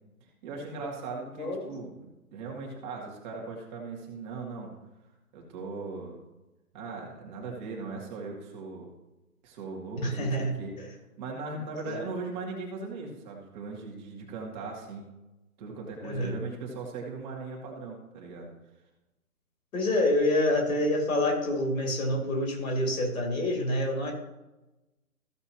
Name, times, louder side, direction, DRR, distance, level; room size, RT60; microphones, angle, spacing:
voice 1, 0.4-4.7 5.3-6.2 6.7-8.9 9.4-10.8 11.2-15.1 15.6-18.5, right 3 dB, 30° right, -1 dB, 2.2 m, -39 dB
voice 2, 10.0-10.9 11.8-12.0 16.0-16.4 19.7-24.1, left 1 dB, 65° left, 0 dB, 3.6 m, -27 dB
15.5 x 6.8 x 3.0 m, 1.0 s
figure-of-eight pair, 135°, 45 cm